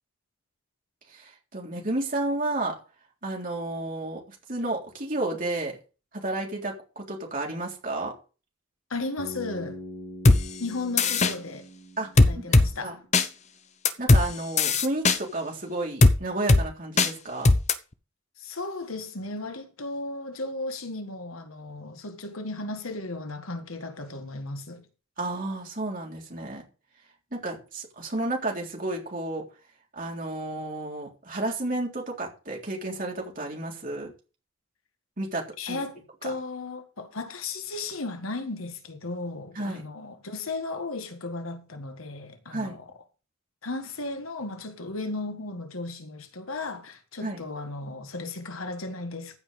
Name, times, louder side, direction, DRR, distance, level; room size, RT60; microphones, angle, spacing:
voice 1, 1.1-2.8 3.2-5.8 6.1-8.1 12.0-13.0 14.0-17.5 25.2-26.7 27.3-29.4 29.9-34.1 35.2-35.8 39.6-39.8 42.5-42.8 47.2-47.4, right 2 dB, 40° right, 3.7 m, -32 dB
voice 2, 8.9-9.8 10.6-11.7 12.2-13.1 18.4-24.9 35.6-42.8 43.6-49.4, left 2 dB, 85° left, 1.7 m, -35 dB
Bass guitar, 9.2-13.2, equal, 60° left, 5.4 m, -43 dB
sound 1, 10.3-10.4 11.0-11.3 12.2-12.7 13.1-13.3 13.9-14.2 14.6-15.2 16.0-16.2 16.5-16.6 17.0-17.1 17.5-17.7, left 2 dB, 35° left, 0.8 m, -17 dB
15.0 x 5.4 x 5.3 m
head